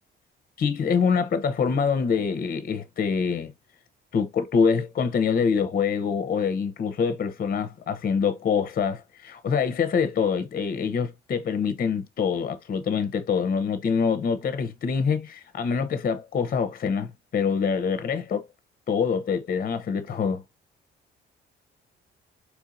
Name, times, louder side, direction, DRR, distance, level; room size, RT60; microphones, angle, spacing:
voice 1, 0.6-3.5 4.1-18.4 18.9-20.4, left 6 dB, 50° left, 0.7 m, -25 dB
4.4 x 2.8 x 2.5 m
cardioid pair, 90°, 20 cm